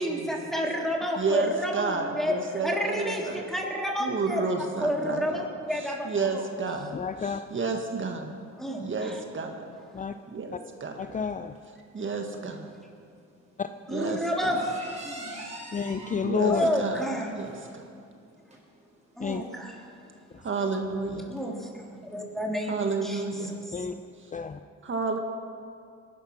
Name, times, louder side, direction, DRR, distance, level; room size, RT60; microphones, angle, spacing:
voice 1, 0.0-2.3 2.6-4.5 4.8-6.4 8.6-9.2 13.9-14.6 15.0-15.3 16.5-17.3 19.2-19.8 21.3-23.5, equal, ahead, -1 dB, 3.4 m, -30 dB
voice 2, 1.2-3.4 4.0-5.4 6.1-8.3 8.8-9.7 10.3-10.9 11.9-12.7 13.9-14.6 16.2-17.0 17.3-17.8 20.4-21.3 22.7-23.6 24.8-25.2, right 4 dB, 40° right, 4 dB, 1.7 m, -31 dB
sound 1, 5.6-24.3, right 1 dB, 20° right, 4.6 m, -49 dB
voice 3, 6.9-7.4 9.9-10.1 11.0-11.5 13.6-13.7 15.7-16.7 19.2-19.4 23.7-23.9 24.3-24.6, left 6 dB, 25° left, 9 dB, 0.5 m, -29 dB
20.0 x 11.5 x 6.0 m, 2.4 s
cardioid pair, 90°, 30 cm